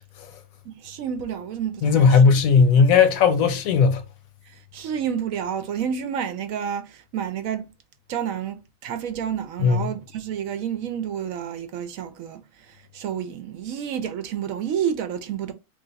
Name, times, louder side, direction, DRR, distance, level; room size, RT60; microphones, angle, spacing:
voice 1, 0.6-2.2 2.7-2.8 4.4-7.7 8.1-15.5, right 8 dB, 70° right, 0.9 m, -30 dB
voice 2, 1.8-4.0 9.6-9.8, left 5 dB, 70° left, 1.0 m, -16 dB
3.3 x 2.4 x 3.9 m
omnidirectional pair, 1.6 m